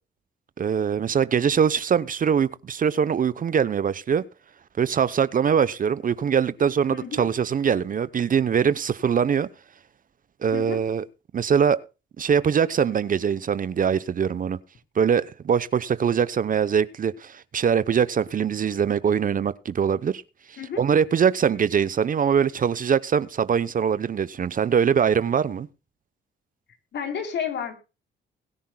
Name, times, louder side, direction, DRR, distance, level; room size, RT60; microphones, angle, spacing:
voice 1, 0.6-4.2 4.8-9.5 10.4-11.0 11.3-11.8 12.2-14.6 15.0-20.2 20.5-25.7, right 7 dB, 45° right, 0.8 m, -22 dB
voice 2, 6.9-7.3 10.5-10.8 20.6-20.8 26.9-27.7, left 7 dB, 60° left, 3.7 m, -31 dB
21.0 x 10.0 x 2.3 m
cardioid pair, 90°, 20 cm